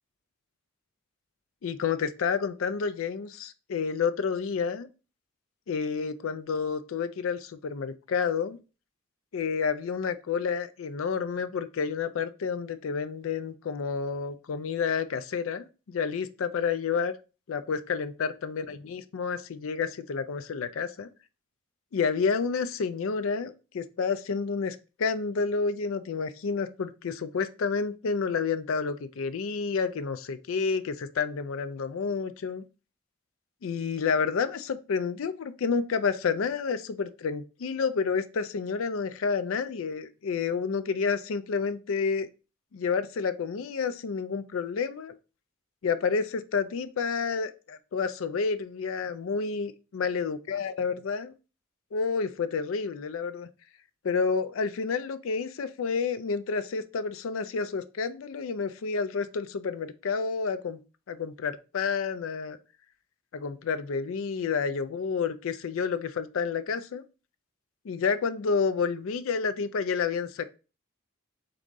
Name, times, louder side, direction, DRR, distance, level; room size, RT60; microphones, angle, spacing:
voice 1, 1.6-4.9 5.7-8.6 9.3-17.1 17.5-21.1 21.9-32.6 33.6-42.3 42.7-45.2 45.8-51.3 51.9-53.5 54.0-60.8 61.1-62.6 63.3-67.0 67.8-70.5, left 5 dB, 70° left, 0.4 m, -30 dB
3.8 x 3.6 x 3.7 m
head